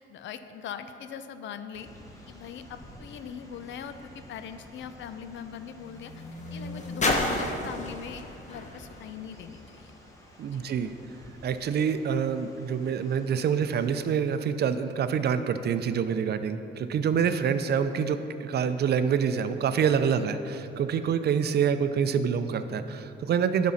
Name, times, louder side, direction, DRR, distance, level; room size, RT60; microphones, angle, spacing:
voice 1, 0.0-1.9 2.3-6.2 6.5-9.9 10.5-10.6, left 8 dB, 70° left, 10 dB, 0.5 m, -41 dB
sound 1, 1.7-14.1, equal, 15° left, 1.4 m, -52 dB
sound 2, 3.5-10.0 10.8-10.9, left 2 dB, 35° left, 1.2 m, -34 dB
voice 2, 10.4-10.9 11.4-23.7, right 7 dB, 55° right, 10 dB, 0.5 m, -26 dB
11.0 x 6.2 x 4.2 m, 2.8 s
cardioid pair, 90°, 20 cm